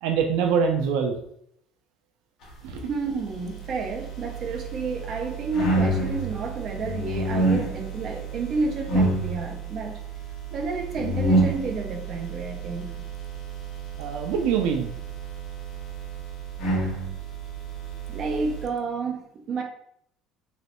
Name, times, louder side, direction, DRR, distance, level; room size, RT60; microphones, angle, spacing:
voice 1, 0.0-1.1 2.6-2.9 14.0-14.9, right 6 dB, 85° right, 4 dB, 0.4 m, -24 dB
voice 2, 2.9-9.9 10.5-13.0 18.1-19.6, right 4 dB, 40° right, 2 dB, 0.7 m, -30 dB
sound 1, 3.2-18.6, right 2 dB, 45° left, 1.5 m, -29 dB
3.1 x 3.0 x 2.9 m, 0.69 s
cardioid pair, 140°, 0 cm